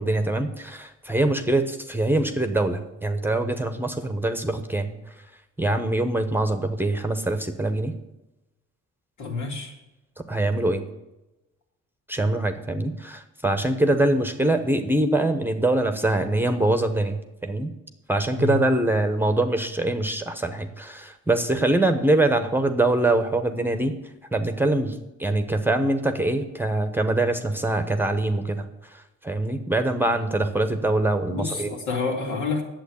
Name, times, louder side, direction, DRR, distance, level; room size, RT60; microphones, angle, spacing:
voice 1, 0.0-5.0 5.6-7.9 10.3-10.8 12.1-17.7 18.1-24.0 24.3-24.9 25.2-28.7 29.2-31.7, right 2 dB, 5° right, 8 dB, 1.1 m, -23 dB
voice 2, 9.2-9.7 18.3-18.6 31.3-32.6, left 4 dB, 75° left, -1 dB, 3.1 m, -28 dB
9.2 x 7.8 x 8.7 m, 0.98 s
cardioid pair, 90°, 30 cm